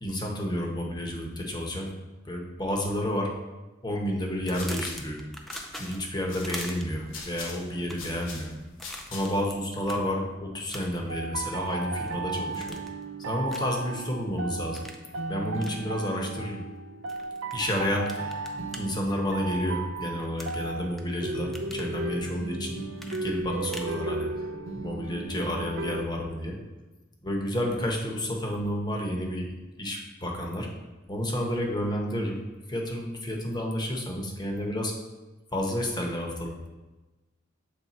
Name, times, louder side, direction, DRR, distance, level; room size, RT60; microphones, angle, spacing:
voice 1, 0.0-1.9 2.2-3.3 3.8-5.2 5.7-8.5 9.1-12.8 13.2-14.8 15.3-16.6 17.5-24.5 24.7-26.6 27.2-29.5 29.8-30.7 31.1-32.4 32.7-34.9 35.5-36.7, equal, 20° left, 0 dB, 0.8 m, -30 dB
sound 1, 4.3-9.5, left 3 dB, 85° left, 1.1 m, -43 dB
sound 2, 4.5-6.1 6.4-7.1 7.7-8.2 8.8-9.6 9.8-10.0 10.7-11.1 11.5-12.1 12.5-13.0 13.5-13.8 14.7-15.0 15.6-15.8 17.1-17.5 18.1-18.8 20.4-21.0 21.3-21.9 23.0-24.0, equal, ahead, 0.4 m, -42 dB
sound 3, 11.1-26.1, right 3 dB, 85° right, 0.5 m, -35 dB
7.2 x 3.3 x 4.1 m, 1.1 s
head